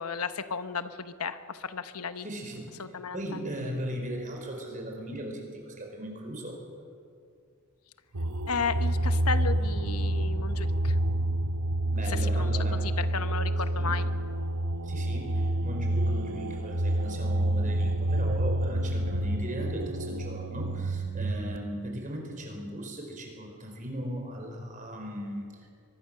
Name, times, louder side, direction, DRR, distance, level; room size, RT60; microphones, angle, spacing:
voice 1, 0.0-2.3 2.8-3.2 8.5-11.0 12.0-14.1, left 5 dB, 80° left, 10 dB, 1.0 m, -34 dB
voice 2, 2.2-2.8 3.1-6.6 11.9-12.8 13.7-14.0 14.8-25.7, equal, 35° right, 2 dB, 4.7 m, -38 dB
sound 1, 8.1-21.6, right 1 dB, 80° right, 1.0 m, -28 dB
23.5 x 20.5 x 6.7 m, 2.3 s
head